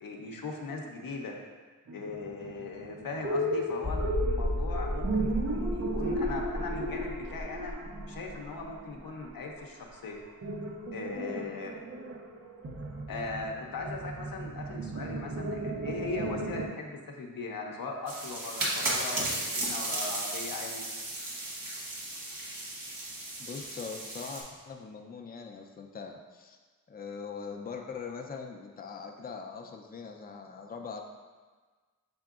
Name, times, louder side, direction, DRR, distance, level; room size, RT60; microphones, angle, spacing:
voice 1, 0.0-1.4 1.9-7.7 8.1-10.2 10.9-11.7 13.1-20.8, left 3 dB, 85° left, 1 dB, 0.6 m, -39 dB
sound 1, 1.9-9.3 9.6-9.7 9.9-10.0 10.4-16.7, right 1 dB, 45° right, 0.5 m, -35 dB
sound 2, 3.8-9.3 9.6-9.7 10.2-10.3, left 1 dB, 15° right, 0.8 m, -34 dB
sound 3, 18.1-24.4, right 2 dB, 80° right, 1.1 m, -35 dB
voice 2, 23.4-26.6 26.9-31.0, left 5 dB, 25° left, 3 dB, 0.4 m, -42 dB
5.9 x 3.6 x 2.4 m, 1.4 s
wide cardioid pair, 55°, 34 cm